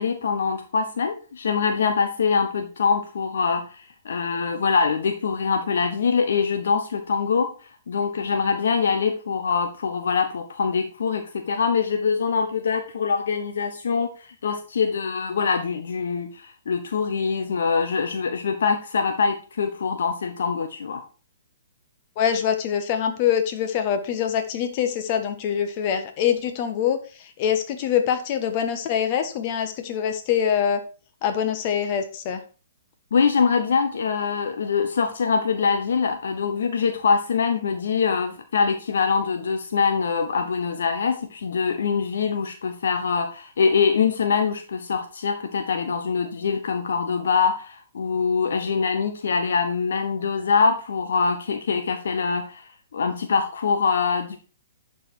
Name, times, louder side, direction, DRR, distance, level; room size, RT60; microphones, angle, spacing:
voice 1, 0.0-21.0 33.1-54.4, left 5 dB, 65° left, 7 dB, 1.0 m, -24 dB
voice 2, 22.2-30.8 31.2-32.4, left 8 dB, 40° left, 7 dB, 1.4 m, -24 dB
10.5 x 4.9 x 4.5 m, 0.35 s
figure-of-eight pair, 125°, 0 cm